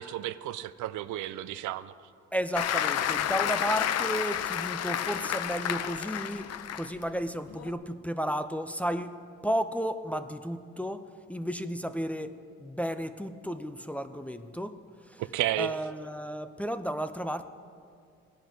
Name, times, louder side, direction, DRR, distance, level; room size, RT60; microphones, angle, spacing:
voice 1, 0.0-1.9 15.2-15.7, right 14 dB, 80° right, 15 dB, 0.5 m, -32 dB
voice 2, 2.3-9.2 9.4-14.8 15.0-15.2 15.6-17.5, equal, 5° left, 9 dB, 0.4 m, -33 dB
Applause, 2.5-7.0 7.5-7.7, left 10 dB, 60° left, 0.5 m, -30 dB
17.0 x 10.5 x 2.7 m, 2.3 s
cardioid pair, 90°, 30 cm